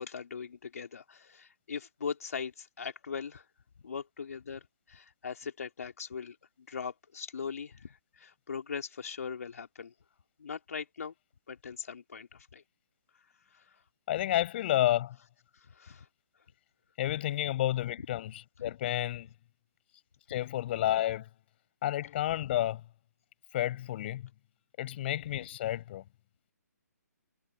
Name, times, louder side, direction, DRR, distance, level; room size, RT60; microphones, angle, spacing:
voice 1, 0.0-3.5 3.8-6.4 6.7-9.9 10.4-11.1 11.5-12.6 13.5-13.8 15.5-16.1 18.6-18.7, left 6 dB, 60° left, 2.9 m, -40 dB
voice 2, 14.1-15.2 17.0-19.3 20.3-21.3 21.8-22.8 23.5-24.3 24.8-26.0, left 13 dB, 40° left, 4.6 m, -30 dB
figure-of-eight pair, 135°, 9 cm